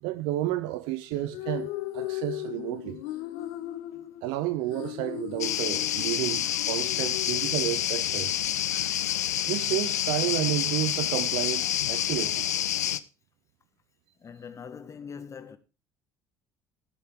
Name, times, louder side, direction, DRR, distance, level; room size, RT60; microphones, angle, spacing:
voice 1, 0.0-3.0 4.2-8.4 9.5-12.5, right 15 dB, 70° right, 0.7 m, -31 dB
sound 1, 1.1-8.1, left 15 dB, 70° left, 1.2 m, -37 dB
sound 2, 5.4-13.0, left 11 dB, 90° left, 0.5 m, -28 dB
voice 2, 14.2-15.6, left 6 dB, 35° left, 1.8 m, -42 dB
12.5 x 11.0 x 3.7 m
hypercardioid pair, 60°, 8 cm